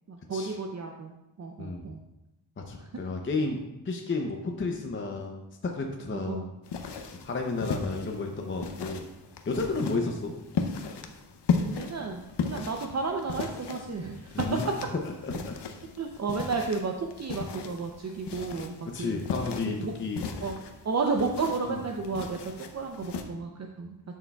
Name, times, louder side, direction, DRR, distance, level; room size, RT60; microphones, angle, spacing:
voice 1, 0.1-2.0 2.8-2.9 6.3-6.4 10.0-10.2 11.6-14.7 16.0-19.2 19.8-19.9 20.4-20.5 20.8-24.0, right 4 dB, 40° right, 2 dB, 0.6 m, -32 dB
voice 2, 2.6-6.5 7.2-9.0 9.5-10.3 14.3-14.6 15.0-15.6 18.9-20.2 21.7-21.8, left 3 dB, 30° left, 2 dB, 0.6 m, -32 dB
sound 1, 6.6-23.2, left 5 dB, 75° left, 0.8 m, -36 dB
11.0 x 6.3 x 2.3 m, 0.96 s
wide cardioid pair, 125°, 41 cm